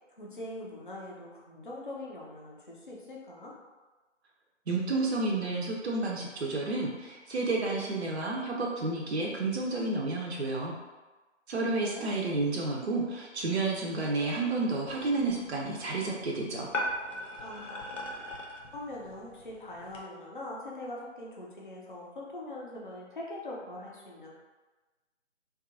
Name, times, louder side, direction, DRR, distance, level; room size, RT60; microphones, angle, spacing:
voice 1, 0.2-3.6 11.8-12.1 17.4-17.9 18.7-24.3, left 1 dB, 45° left, -3 dB, 0.4 m, -42 dB
voice 2, 4.7-10.8 11.5-16.7, right 3 dB, 60° right, -2 dB, 0.5 m, -31 dB
sound 1, 14.9-20.0, left 1 dB, 80° left, 0.7 m, -39 dB
2.7 x 2.3 x 2.4 m, 1.2 s
figure-of-eight pair, 155°, 37 cm